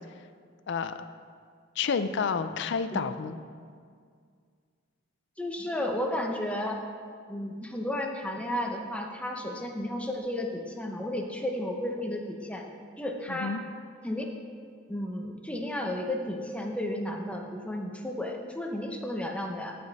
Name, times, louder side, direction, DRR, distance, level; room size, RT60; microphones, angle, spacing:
voice 1, 0.7-1.0 1.8-3.4 13.3-13.6, left 5 dB, 60° left, 11 dB, 0.4 m, -30 dB
voice 2, 5.4-6.8 7.3-12.7 13.0-13.6 14.0-14.2 14.9-19.7, left 1 dB, 5° left, 2 dB, 0.8 m, -33 dB
14.5 x 5.2 x 4.1 m, 2.1 s
head